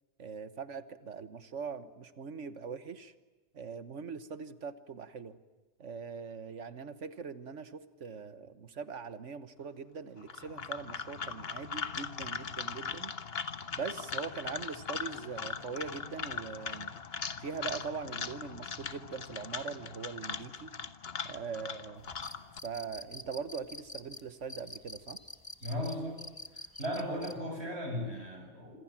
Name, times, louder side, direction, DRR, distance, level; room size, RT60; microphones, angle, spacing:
voice 1, 0.2-3.1 3.5-5.4 5.8-13.1 13.7-16.9 17.4-20.7 21.2-22.1 22.6-25.2, right 5 dB, 85° right, 12 dB, 1.6 m, -41 dB
sound 1, 10.2-22.6, left 6 dB, 60° left, 1.4 m, -40 dB
sound 2, 22.0-27.3, left 1 dB, 20° left, 1.4 m, -46 dB
voice 2, 25.6-26.3 26.8-28.8, equal, 60° right, 4 dB, 6.9 m, -36 dB
27.0 x 26.0 x 7.4 m, 1.2 s
omnidirectional pair, 1.2 m